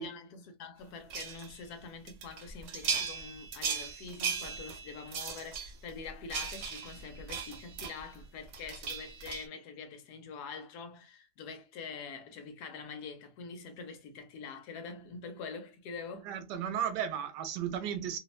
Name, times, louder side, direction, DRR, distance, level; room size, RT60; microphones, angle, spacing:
voice 1, 0.0-16.3, left 5 dB, 75° left, 1.1 m, -45 dB
sound 1, 1.1-1.5 2.1-8.2 8.5-9.5, right 6 dB, 65° right, 0.8 m, -38 dB
voice 2, 16.2-18.2, right 9 dB, 85° right, 1.2 m, -34 dB
2.9 x 2.1 x 2.3 m
omnidirectional pair, 1.8 m